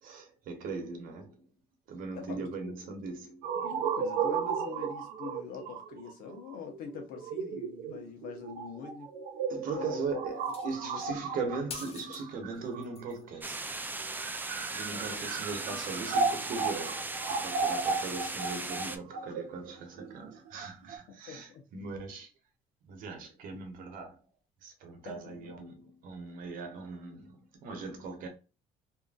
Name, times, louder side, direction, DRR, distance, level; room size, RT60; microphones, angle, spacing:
voice 1, 0.0-1.4 1.9-3.5 9.5-13.7 14.7-22.3 22.8-24.2 24.6-28.3, right 4 dB, 70° right, 0.9 m, -39 dB
voice 2, 2.1-2.8 3.6-9.1 9.7-10.2 10.7-11.2 14.9-15.3 21.3-21.6 25.0-25.5, left 6 dB, 80° left, 0.9 m, -43 dB
sound 1, 3.4-13.3 14.0-21.0, right 5 dB, 90° right, 0.5 m, -35 dB
sound 2, 10.4-10.9 11.7-12.2 12.5-13.2 14.2-14.3, left 6 dB, 40° left, 0.6 m, -45 dB
sound 3, 13.4-19.0, right 3 dB, 15° right, 0.4 m, -38 dB
2.8 x 2.5 x 2.3 m
cardioid pair, 95°, 15 cm